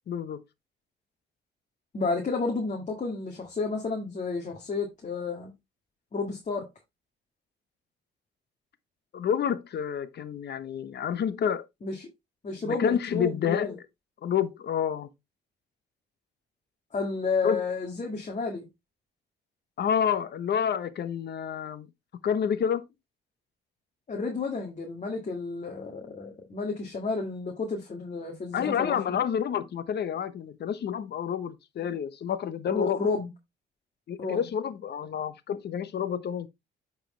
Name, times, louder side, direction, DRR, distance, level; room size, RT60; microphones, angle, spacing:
voice 1, 0.1-0.4 9.1-11.7 12.6-13.8 14.2-15.1 17.4-17.6 19.8-21.9 22.2-22.9 28.5-33.0 34.1-36.5, left 8 dB, 55° left, 1.0 m, -29 dB
voice 2, 1.9-5.5 6.1-6.7 11.8-12.1 12.4-13.8 16.9-18.7 24.1-29.2 32.7-33.3 34.2-34.5, left 4 dB, 35° left, 2.1 m, -31 dB
9.3 x 4.8 x 3.3 m
cardioid pair, 90°, 20 cm